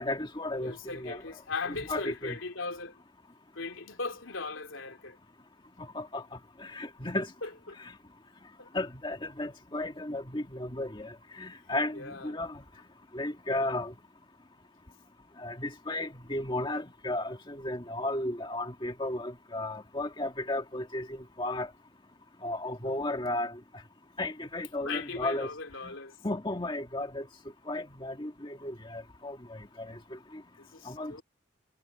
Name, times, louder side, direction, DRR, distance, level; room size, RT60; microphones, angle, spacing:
voice 1, 0.0-1.2 1.7-2.4 6.0-6.2 6.6-7.3 8.7-11.1 11.4-12.5 13.1-13.9 15.4-21.1 21.4-21.7 22.4-23.5 24.2-25.5 26.2-27.2 27.7-29.4 29.8-29.9 30.9-31.2, left 1 dB, 25° left, 1.8 m, -34 dB
voice 2, 0.6-3.0 3.5-5.2 7.4-7.7 8.6-8.7 11.9-12.4 22.8-23.1 24.8-26.1 30.6-31.2, left 4 dB, 85° left, 3.1 m, -38 dB
head